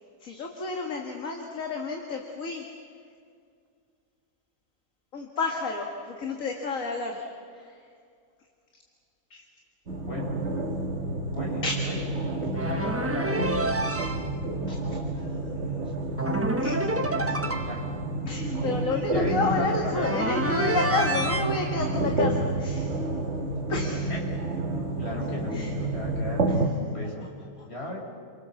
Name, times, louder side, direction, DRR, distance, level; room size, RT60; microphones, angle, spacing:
voice 1, 0.2-2.7 5.1-7.3 7.5-7.8 9.3-9.4 11.6-11.8 14.7-15.3 16.6-16.8 17.2-17.6 18.2-22.9 23.7-24.1 25.5-25.7 27.6-27.7, left 3 dB, 60° left, 2 dB, 2.2 m, -31 dB
sound 1, 9.9-26.7, right 2 dB, 45° right, 2.1 m, -30 dB
voice 2, 11.3-12.1 12.6-13.5 17.6-17.8 19.1-20.2 24.1-24.2 25.0-27.3 27.7-28.0, left 1 dB, 40° left, 0 dB, 5.5 m, -35 dB
sound 2, 12.5-14.3 16.2-17.9 19.9-21.5, right 2 dB, 10° right, 1.1 m, -28 dB
29.5 x 23.0 x 7.2 m, 2.2 s
omnidirectional pair, 1.6 m